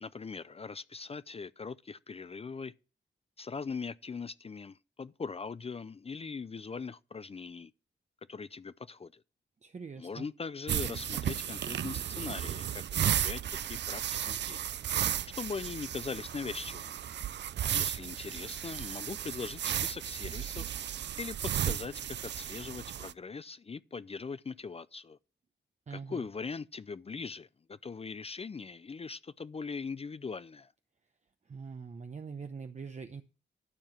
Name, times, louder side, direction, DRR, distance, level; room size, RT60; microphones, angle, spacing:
voice 1, 0.0-2.7 3.4-7.7 8.3-9.2 10.0-14.6 15.3-17.0 17.7-20.7 21.2-25.2 25.9-30.7, left 5 dB, 30° left, 0.4 m, -41 dB
voice 2, 9.6-10.3 25.9-26.3 31.5-33.2, right 5 dB, 40° right, 0.8 m, -43 dB
sound 1, 10.7-23.1, right 10 dB, 65° right, 0.4 m, -34 dB
12.0 x 4.7 x 7.3 m
wide cardioid pair, 95°, 19 cm